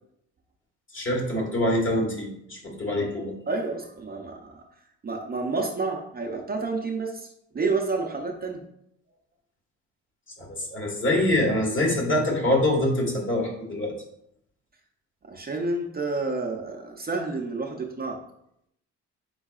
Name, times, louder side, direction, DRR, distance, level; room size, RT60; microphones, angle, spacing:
voice 1, 0.9-3.3 10.4-13.9, left 1 dB, 40° left, -1 dB, 1.5 m, -25 dB
voice 2, 3.5-4.6 5.0-7.3 7.5-8.6 15.2-18.2, right 3 dB, 30° right, 2 dB, 0.6 m, -29 dB
5.5 x 3.9 x 2.4 m, 0.75 s
cardioid pair, 90°, 30 cm